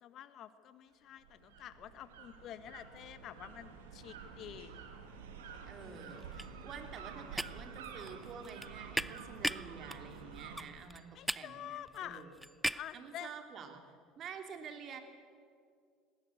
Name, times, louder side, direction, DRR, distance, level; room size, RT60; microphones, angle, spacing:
voice 1, 0.0-4.8 5.8-6.4 11.1-12.2 12.7-13.3, left 11 dB, 50° left, 12 dB, 1.4 m, -48 dB
sound 1, 1.2-10.6, right 6 dB, 85° right, 2.3 m, -49 dB
sound 2, 5.4-5.5 5.8-13.0, equal, 5° right, 0.5 m, -40 dB
voice 2, 5.7-11.0 11.3-12.4 12.9-13.8 14.2-15.0, right 6 dB, 45° right, 5 dB, 2.9 m, -49 dB
20.5 x 17.5 x 8.4 m, 2.2 s
hypercardioid pair, 75°, 0 cm